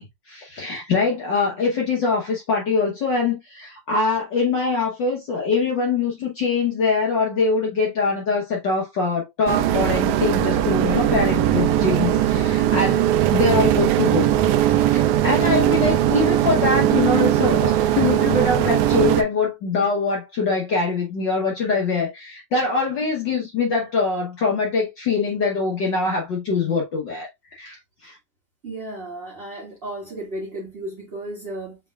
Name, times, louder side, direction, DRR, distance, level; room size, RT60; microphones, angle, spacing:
voice 1, 0.0-13.1 13.3-28.2, left 4 dB, 70° left, 1.0 m, -23 dB
sound 1, 9.5-19.2, right 12 dB, 80° right, 1.9 m, -19 dB
voice 2, 28.6-31.8, right 1 dB, 25° right, 1.6 m, -34 dB
6.8 x 3.4 x 2.3 m
omnidirectional pair, 3.5 m